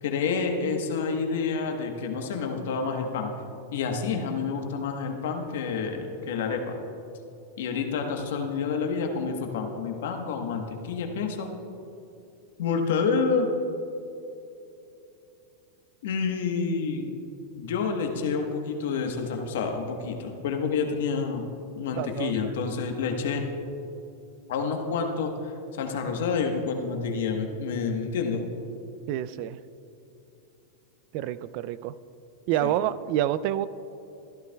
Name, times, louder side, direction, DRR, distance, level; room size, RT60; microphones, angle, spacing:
voice 1, 0.0-3.3 3.7-6.7 7.6-11.5 12.6-13.5 16.0-17.1 17.5-21.5 21.8-23.4 24.5-25.5 25.8-28.5 32.6-32.7, left 5 dB, 75° left, 4 dB, 1.2 m, -28 dB
voice 2, 22.0-22.3 29.1-29.6 31.1-31.9 32.5-33.7, right 12 dB, 55° right, 16 dB, 0.3 m, -28 dB
14.0 x 12.0 x 2.3 m, 2.8 s
hypercardioid pair, 110°, 0 cm